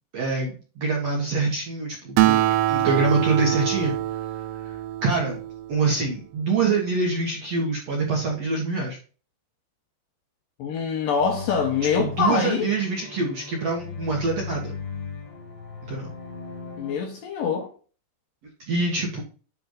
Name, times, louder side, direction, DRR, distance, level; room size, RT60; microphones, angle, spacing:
voice 1, 0.1-2.4 2.7-3.9 4.6-5.4 5.7-9.0 11.9-14.7 15.9-16.1 18.7-19.2, right 3 dB, 60° right, 1.9 m, -25 dB
Acoustic guitar, 2.2-5.9, right 14 dB, 80° right, 2.4 m, -24 dB
voice 2, 10.6-12.7 16.8-17.7, left 6 dB, 75° left, 2.2 m, -24 dB
sound 1, 11.2-16.9, left 5 dB, 55° left, 4.8 m, -37 dB
10.0 x 3.5 x 3.9 m
omnidirectional pair, 4.7 m